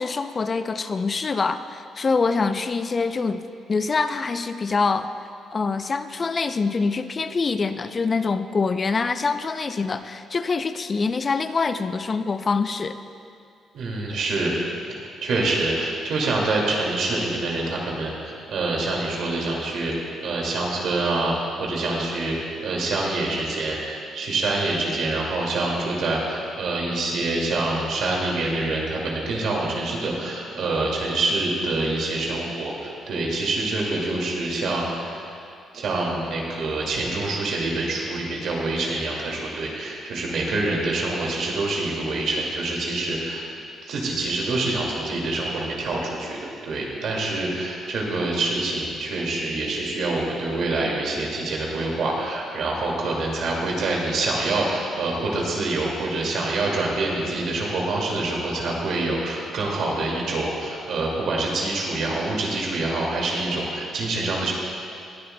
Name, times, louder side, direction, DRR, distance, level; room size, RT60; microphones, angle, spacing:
voice 1, 0.0-3.4 3.7-5.1 5.5-13.0, left 4 dB, 35° left, 11 dB, 0.5 m, -25 dB
voice 2, 13.7-14.5 15.2-19.9 20.2-21.3 21.6-22.4 22.6-35.3 35.7-43.5 43.8-64.5, right 2 dB, 70° right, -2 dB, 2.2 m, -26 dB
20.0 x 10.5 x 2.2 m, 2.5 s
cardioid pair, 90°, 0 cm